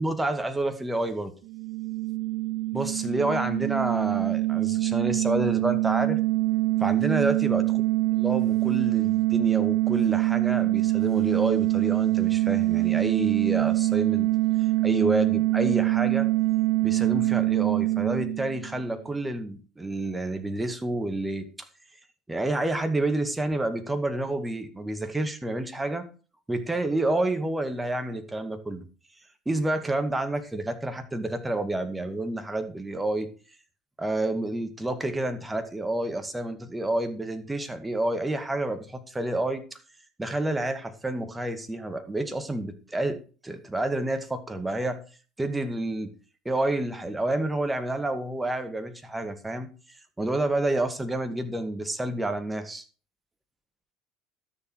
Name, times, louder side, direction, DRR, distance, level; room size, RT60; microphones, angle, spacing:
voice 1, 0.0-1.3 2.7-6.2 6.8-7.6 8.2-14.3 14.8-16.3 16.8-21.7 22.3-26.1 26.5-28.9 29.5-33.3 34.0-39.8 40.2-45.0 45.4-46.1 46.5-52.8, right 1 dB, 10° right, 2.0 m, -29 dB
sound 1, 1.5-19.0, right 18 dB, 65° right, 0.5 m, -24 dB
13.0 x 7.0 x 4.8 m
hypercardioid pair, 65°, 0 cm